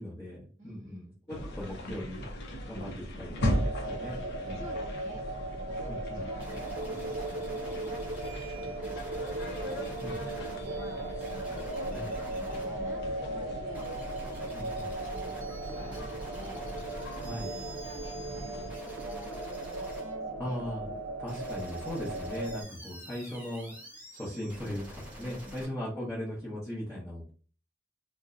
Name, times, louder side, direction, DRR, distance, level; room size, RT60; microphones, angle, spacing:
voice 1, 0.0-2.3 2.7-4.2 4.4-4.7 5.8-6.2 10.0-10.1 11.9-12.1 14.5-14.9 17.2-17.5 20.4-20.9 21.2-23.7 24.1-27.3, left 1 dB, 15° left, -7 dB, 0.9 m, -38 dB
voice 2, 0.6-1.1 4.5-11.1 11.4-20.6 25.2-25.7, equal, 35° right, -2 dB, 0.7 m, -51 dB
sound 1, 1.3-18.8, equal, 60° left, 0.6 m, -39 dB
sound 2, 3.4-22.6, right 2 dB, 70° right, 0.5 m, -38 dB
sound 3, 6.4-25.7, right 1 dB, 10° right, 1.2 m, -48 dB
2.7 x 2.1 x 3.6 m, 0.40 s
head